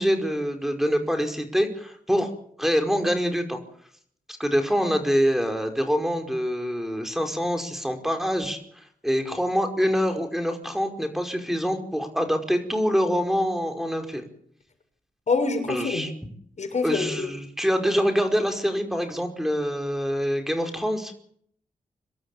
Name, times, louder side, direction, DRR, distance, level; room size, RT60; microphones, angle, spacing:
voice 1, 0.0-2.3 2.6-3.6 4.3-14.3 15.7-16.1 16.8-21.1, equal, ahead, 5 dB, 5.0 m, -25 dB
voice 2, 15.3-16.1 16.6-17.3, left 4 dB, 55° left, 5 dB, 6.8 m, -25 dB
25.0 x 12.5 x 8.9 m, 0.64 s
cardioid pair, 50°, 14 cm